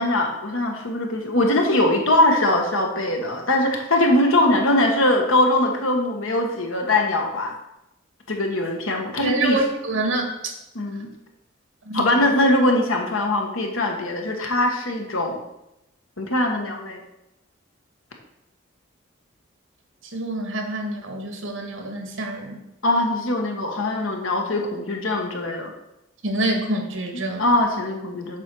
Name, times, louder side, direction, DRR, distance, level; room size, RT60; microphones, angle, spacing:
voice 1, 0.0-7.6 8.3-9.6 10.7-11.1 11.9-15.4 16.2-17.0 22.8-25.7 27.4-28.4, left 1 dB, 80° left, 2 dB, 1.5 m, -21 dB
voice 2, 9.2-10.5 11.9-12.1 20.1-22.6 26.2-27.5, right 2 dB, 70° right, 3 dB, 1.7 m, -26 dB
7.5 x 4.4 x 6.2 m, 0.88 s
head